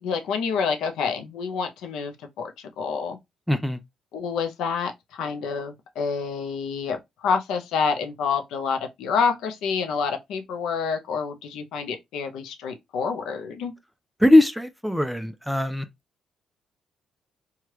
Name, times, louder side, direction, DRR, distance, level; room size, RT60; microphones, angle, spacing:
voice 1, 0.0-3.2 4.1-13.7, left 5 dB, 85° left, 0.6 m, -28 dB
voice 2, 3.5-3.8 14.2-15.9, left 1 dB, ahead, 0.4 m, -20 dB
3.2 x 2.3 x 2.8 m
cardioid pair, 90°, 0 cm